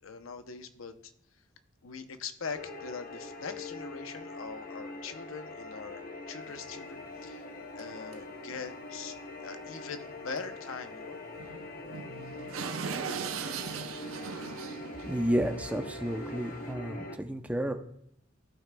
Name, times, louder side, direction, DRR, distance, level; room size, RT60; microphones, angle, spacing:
voice 1, 0.0-1.1 1.8-7.4 7.7-11.2, left 5 dB, 75° left, 9 dB, 0.7 m, -42 dB
sound 1, 2.5-17.2, left 2 dB, 45° left, 0.8 m, -43 dB
sound 2, 6.4-6.5 7.0-7.1 7.8-7.9 8.1-8.2 8.5-8.7 10.4-10.5 10.7-10.8 11.4-16.7, right 6 dB, 85° right, 0.6 m, -40 dB
voice 2, 15.0-17.7, equal, 5° right, 6 dB, 0.6 m, -31 dB
15.5 x 5.9 x 2.2 m, 0.75 s
head